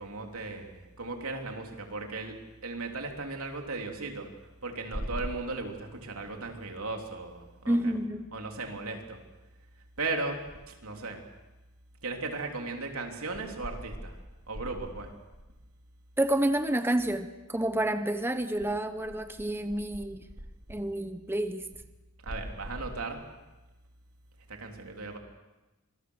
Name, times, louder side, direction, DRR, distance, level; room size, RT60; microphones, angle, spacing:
voice 1, 0.0-4.3 4.6-7.9 8.3-9.2 10.0-11.3 12.0-14.2 14.5-15.2 22.2-23.3 24.5-25.2, right 3 dB, 90° right, 3 dB, 3.4 m, -36 dB
voice 2, 7.7-8.3 16.2-20.2 20.7-21.7, right 1 dB, 10° right, 9 dB, 0.9 m, -29 dB
26.5 x 21.5 x 6.4 m, 1.1 s
head